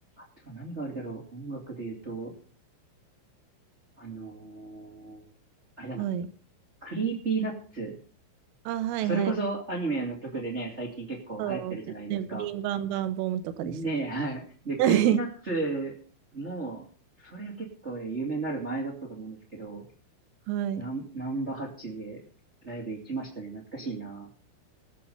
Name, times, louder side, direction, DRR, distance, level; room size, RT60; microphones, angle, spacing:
voice 1, 0.2-2.3 4.0-5.2 5.8-6.0 6.8-7.9 9.0-12.5 13.6-15.9 16.3-16.9 17.2-19.8 20.8-22.2 22.6-24.3, right 3 dB, 40° right, -1 dB, 1.0 m, -34 dB
voice 2, 6.0-6.3 8.7-9.4 11.4-11.8 12.1-13.8 14.8-15.2 20.5-20.8, right 11 dB, 80° right, 13 dB, 3.5 m, -28 dB
19.5 x 7.2 x 5.4 m, 0.41 s
omnidirectional pair, 5.9 m